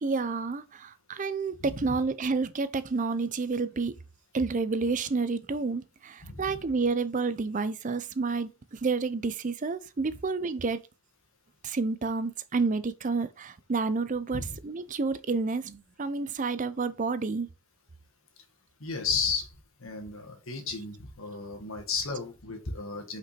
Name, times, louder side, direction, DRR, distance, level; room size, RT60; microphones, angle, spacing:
voice 1, 0.0-3.9 4.3-10.8 11.6-17.5, right 4 dB, 35° right, 0.5 m, -30 dB
voice 2, 1.6-2.0 6.2-6.6 14.3-14.6 18.8-19.5 19.8-23.2, left 5 dB, 65° left, 1.8 m, -33 dB
5.9 x 5.2 x 4.3 m
head